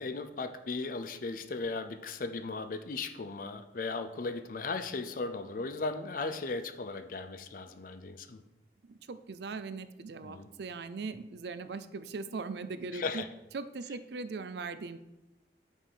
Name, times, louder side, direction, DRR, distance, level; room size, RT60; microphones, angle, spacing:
voice 1, 0.0-8.4 10.2-10.5 12.9-13.3, left 3 dB, 50° left, 9 dB, 0.5 m, -37 dB
voice 2, 8.9-13.2 13.5-15.0, right 4 dB, 65° right, 12 dB, 0.4 m, -40 dB
5.3 x 4.9 x 5.6 m, 0.98 s
head